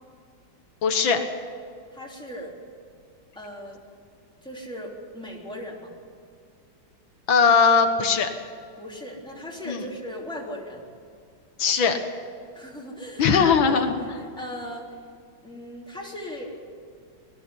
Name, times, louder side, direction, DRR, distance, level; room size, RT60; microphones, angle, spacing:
voice 1, 0.8-1.2 7.3-8.3 9.7-9.8 11.6-12.0 13.2-13.9, left 5 dB, 85° left, 6 dB, 2.1 m, -19 dB
voice 2, 1.9-2.5 3.3-3.8 4.4-5.9 8.8-10.8 12.5-13.3 13.7-13.9 14.3-14.9 15.4-16.5, equal, ahead, -3 dB, 3.3 m, -38 dB
19.0 x 14.0 x 9.8 m, 2.3 s
omnidirectional pair, 2.1 m